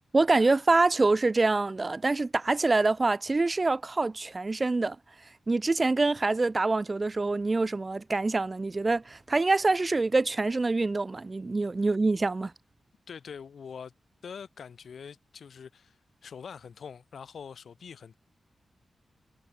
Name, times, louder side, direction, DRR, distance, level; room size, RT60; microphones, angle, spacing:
voice 1, 0.1-5.0 5.5-12.5, right 3 dB, 25° right, 0.5 m, -25 dB
voice 2, 13.1-13.9 14.2-18.2, left 6 dB, 70° left, 4.6 m, -44 dB
wide cardioid pair, 125°, 0 cm